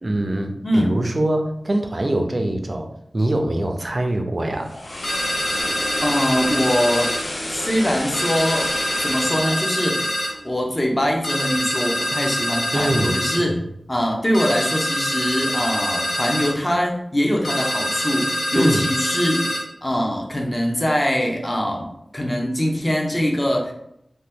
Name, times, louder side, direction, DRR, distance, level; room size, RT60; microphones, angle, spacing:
voice 1, 0.0-2.9 3.1-4.7 12.7-13.4 18.5-18.8, right 1 dB, 40° right, 5 dB, 0.4 m, -23 dB
voice 2, 0.6-1.0 6.0-7.1 7.5-8.7 9.0-13.6 13.9-19.5 19.8-23.7, equal, 25° left, 0 dB, 0.6 m, -23 dB
sound 1, 4.4-10.6 11.0-11.2, left 1 dB, 70° left, 0.6 m, -31 dB
sound 2, 5.0-7.2 8.1-10.3 11.2-13.4 14.3-16.5 17.4-19.6, equal, 85° left, 0.9 m, -25 dB
2.8 x 2.1 x 3.5 m, 0.76 s
wide cardioid pair, 70°, 0 cm